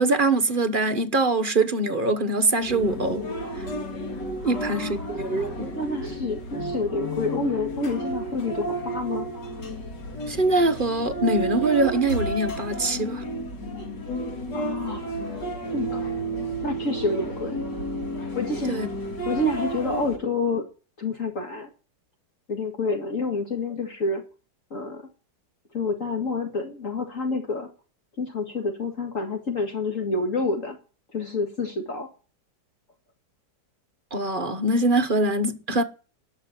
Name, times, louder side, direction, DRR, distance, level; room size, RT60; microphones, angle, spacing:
voice 1, 0.0-3.3 3.6-3.7 4.4-5.8 10.3-13.2 18.7-18.9 34.1-35.8, right 2 dB, 35° right, 1.0 m, -23 dB
sound 1, 2.6-20.2, right 1 dB, 75° left, 3.0 m, -32 dB
voice 2, 4.4-5.1 5.7-9.3 14.5-15.0 15.7-16.1 16.6-17.6 18.3-18.8 19.3-20.6 21.0-21.7 22.5-24.2 24.7-25.1 25.7-27.7 28.2-30.8 31.1-32.1, left 3 dB, 50° left, 2.2 m, -28 dB
12.0 x 6.6 x 9.7 m
omnidirectional pair, 1.9 m